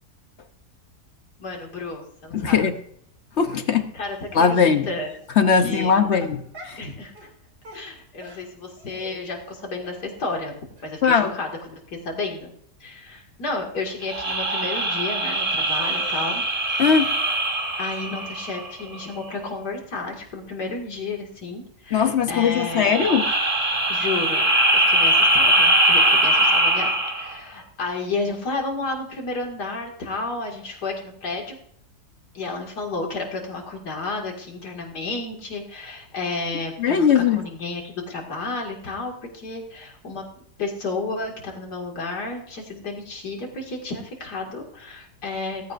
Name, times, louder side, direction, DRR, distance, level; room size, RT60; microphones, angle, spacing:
voice 1, 1.4-2.6 3.9-5.1 5.5-6.2 6.8-7.3 7.7-12.5 12.8-16.4 17.8-22.9 23.9-31.6 32.3-45.7, left 3 dB, 80° left, 1 dB, 2.7 m, -32 dB
voice 2, 2.3-2.7 3.4-3.9 4.3-4.9 5.4-6.4 6.7-6.8 11.0-11.4 16.8-17.1 21.9-23.3 36.8-37.4, left 6 dB, 50° left, 8 dB, 0.9 m, -19 dB
Dog, 3.3-3.7 4.3-4.4 5.2-5.4 5.7-6.9 7.2-7.3 7.6-9.1 9.4-9.6 9.8-10.0 10.3-10.4 10.8-10.9 11.2-11.3 11.6-11.7, equal, 75° right, 3.9 m, -44 dB
sound 1, 14.0-18.8 22.6-27.4, right 1 dB, 25° right, 1.6 m, -21 dB
17.5 x 15.0 x 2.5 m, 0.67 s
omnidirectional pair, 1.7 m